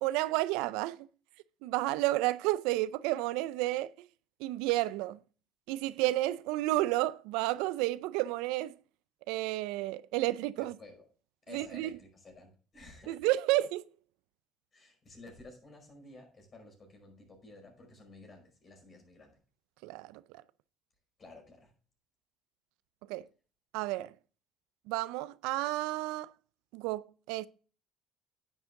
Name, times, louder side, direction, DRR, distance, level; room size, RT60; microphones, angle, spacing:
voice 1, 0.0-1.1 1.6-3.9 4.4-5.2 5.7-8.7 9.3-10.7 11.5-11.9 13.1-13.9 19.8-20.2 23.1-23.2 23.7-24.1 24.9-26.3 26.7-27.5, right 17 dB, 80° right, 0.4 m, -31 dB
voice 2, 10.6-11.1 11.5-13.2 14.7-19.4 21.2-21.7, left 2 dB, 40° left, 5.1 m, -53 dB
10.0 x 7.8 x 3.7 m
hypercardioid pair, 65°, 0 cm